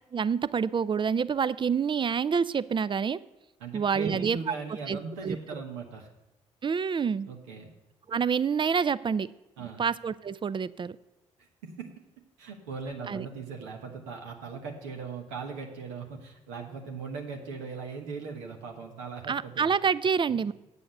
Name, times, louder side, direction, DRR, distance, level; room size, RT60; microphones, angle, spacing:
voice 1, 0.1-3.2 3.7-4.5 4.9-5.4 6.6-7.3 8.1-9.3 9.8-11.0 13.1-13.3 19.3-20.5, right 6 dB, 35° right, 17 dB, 0.4 m, -27 dB
voice 2, 3.6-6.1 7.3-7.7 9.6-9.8 11.6-11.9 12.4-19.7 20.3-20.4, right 4 dB, 80° right, 1 dB, 1.2 m, -39 dB
8.4 x 7.0 x 6.6 m, 0.99 s
hypercardioid pair, 40°, 15 cm